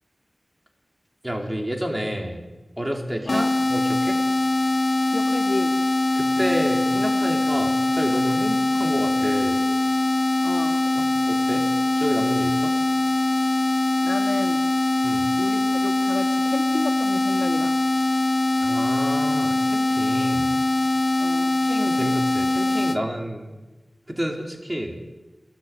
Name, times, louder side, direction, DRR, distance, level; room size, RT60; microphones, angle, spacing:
voice 1, 1.2-2.5 2.8-4.2 6.1-9.6 10.9-11.7 12.0-12.7 15.0-15.3 18.6-20.5 21.6-23.6 24.1-25.0, equal, 15° right, 1 dB, 4.3 m, -29 dB
voice 2, 3.2-3.6 5.1-5.8 10.4-10.8 14.0-14.6 15.4-17.8 21.2-21.5, left 3 dB, 85° left, -2 dB, 2.2 m, -32 dB
sound 1, 3.3-23.0, left 2 dB, 45° left, 1.0 m, -22 dB
29.0 x 18.5 x 9.6 m, 1.1 s
wide cardioid pair, 75°, 0 cm